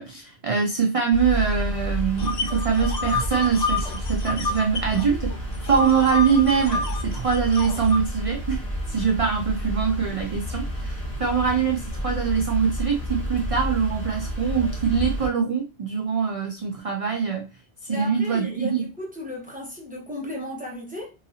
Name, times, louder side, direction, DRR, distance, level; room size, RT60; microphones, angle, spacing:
voice 1, 0.0-17.5 17.8-18.9, right 6 dB, 55° right, 0.4 m, -23 dB
sound 1, 1.1-15.3, equal, 10° left, 1.6 m, -30 dB
sound 2, 2.2-5.0 5.3-8.0, left 4 dB, 45° left, 0.5 m, -29 dB
voice 2, 17.9-21.1, equal, 10° right, 1.0 m, -35 dB
3.8 x 2.7 x 2.7 m
omnidirectional pair, 1.2 m